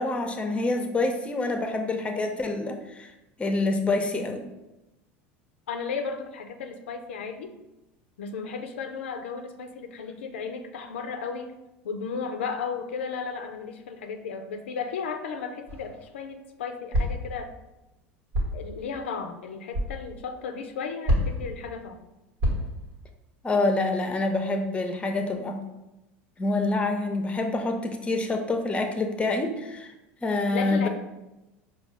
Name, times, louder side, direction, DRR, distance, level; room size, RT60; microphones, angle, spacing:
voice 1, 0.0-3.1 3.4-4.4 23.4-25.6 26.4-29.9 30.2-30.9, left 2 dB, 20° left, 6 dB, 0.6 m, -26 dB
voice 2, 5.7-7.5 8.2-11.5 11.8-17.5 18.5-22.0 30.5-30.9, left 5 dB, 85° left, 7 dB, 0.4 m, -34 dB
sound 1, 15.7-16.0 16.9-17.3 18.3-18.7 19.7-19.9 21.1-21.5 22.4-22.8, equal, 70° right, 1.2 m, -26 dB
4.8 x 2.2 x 3.4 m, 0.97 s
hypercardioid pair, 90°, 6 cm